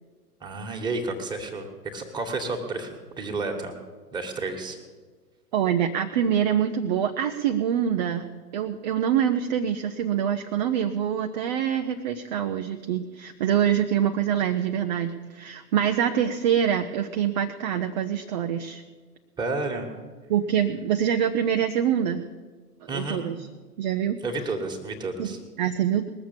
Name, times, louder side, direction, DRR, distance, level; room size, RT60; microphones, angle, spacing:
voice 1, 0.4-3.8 4.1-4.8 19.4-19.9 22.9-23.2 24.2-25.4, right 3 dB, 10° right, 2 dB, 1.7 m, -31 dB
voice 2, 5.5-18.8 20.3-22.3 22.8-23.4 23.8-24.2 25.2-26.1, right 9 dB, 30° right, 6 dB, 0.5 m, -25 dB
20.0 x 7.1 x 7.4 m, 1.4 s
figure-of-eight pair, 110°, 47 cm